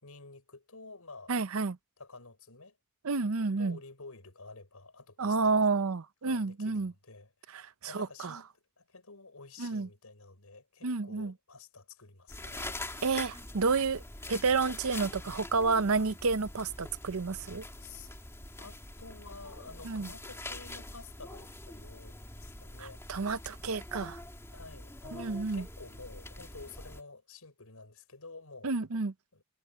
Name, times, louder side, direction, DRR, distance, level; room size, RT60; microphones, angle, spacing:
voice 1, 0.0-1.3 2.0-2.8 3.6-5.8 6.2-8.5 8.8-12.8 15.2-15.4 15.9-16.0 17.8-18.1 18.6-23.0 24.5-28.8 29.3-29.4, left 3 dB, 85° left, 5.5 m, -51 dB
voice 2, 1.3-1.8 3.0-3.8 5.2-6.9 7.5-8.4 9.6-9.9 10.8-11.3 13.0-14.0 14.3-17.6 19.8-20.1 22.8-24.2 25.1-25.7 28.6-29.1, right 4 dB, 70° right, 0.7 m, -30 dB
sound 1, 12.3-27.0, left 2 dB, 10° left, 2.6 m, -44 dB
head